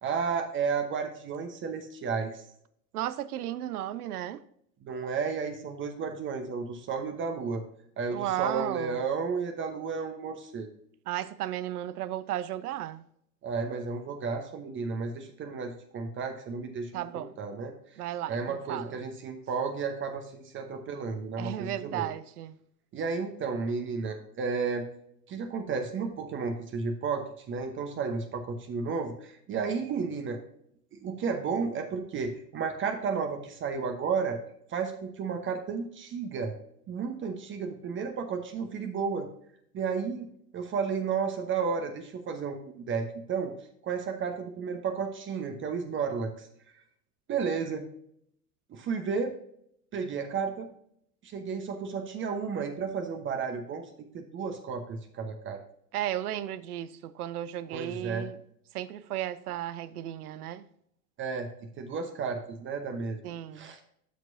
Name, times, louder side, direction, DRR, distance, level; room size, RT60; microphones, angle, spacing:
voice 1, 0.0-2.4 4.8-7.6 8.0-10.7 13.4-17.7 18.3-22.1 22.9-24.8 25.3-30.4 31.0-34.4 34.7-36.6 36.9-39.3 39.7-42.6 42.9-43.5 43.8-46.5 47.3-47.8 48.7-49.3 49.9-50.7 51.2-53.8 54.1-55.6 57.7-58.3 61.2-61.5 61.8-63.2 63.5-63.8, right 5 dB, 25° right, 0.9 m, -32 dB
voice 2, 2.9-4.4 8.1-9.0 11.1-13.0 16.9-17.3 18.0-19.0 21.4-22.6 55.9-58.4 58.7-60.7 63.2-63.7, right 12 dB, 65° right, 0.7 m, -34 dB
13.0 x 4.6 x 2.6 m
figure-of-eight pair, 85°, 50 cm